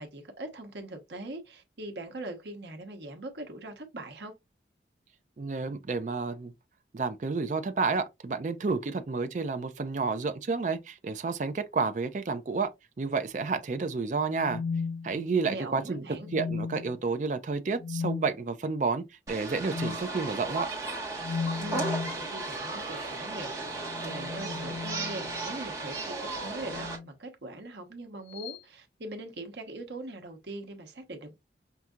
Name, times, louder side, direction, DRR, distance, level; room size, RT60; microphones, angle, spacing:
voice 1, 0.0-4.3 15.5-16.3 21.6-31.3, right 2 dB, 80° right, 1.0 m, -41 dB
voice 2, 5.4-6.5 6.9-12.7 13.0-14.6 15.0-16.0 16.3-20.7, right 4 dB, 45° right, 0.4 m, -30 dB
sound 1, 14.3-15.6 16.2-17.0 17.8-18.3 19.7-20.0 21.2-22.2 23.7-25.6 26.6-27.1 28.3-28.6, left 5 dB, 80° left, 0.5 m, -35 dB
sound 2, 19.3-27.0, right 2 dB, 20° right, 1.3 m, -35 dB
5.7 x 2.7 x 2.4 m
head